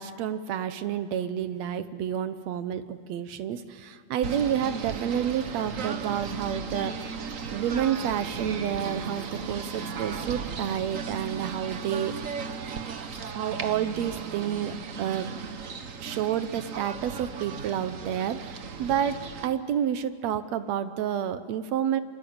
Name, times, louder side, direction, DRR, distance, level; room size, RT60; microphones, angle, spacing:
voice 1, 0.0-7.2 7.5-12.5 13.3-15.3 16.0-19.2 19.4-22.0, right 9 dB, 70° right, 11 dB, 2.0 m, -29 dB
Singing / Bird, 4.2-19.5, right 5 dB, 90° right, 0.7 m, -36 dB
27.0 x 25.0 x 8.7 m, 2.3 s
omnidirectional pair, 3.4 m